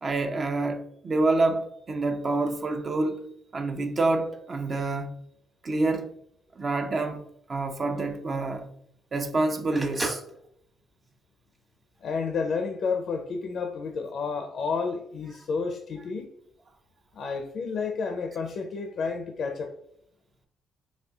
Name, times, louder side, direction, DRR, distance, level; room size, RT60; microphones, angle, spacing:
voice 1, 0.0-3.3 3.5-5.1 5.6-6.1 6.6-7.2 7.5-8.7 9.1-10.2, right 2 dB, 40° right, 0.5 m, -27 dB
Telephone, 7.2-12.1, right 2 dB, 20° right, 1.0 m, -39 dB
voice 2, 12.0-16.3 17.1-19.7, left 5 dB, 60° left, 0.4 m, -30 dB
4.2 x 3.0 x 2.3 m
cardioid pair, 90°, 0 cm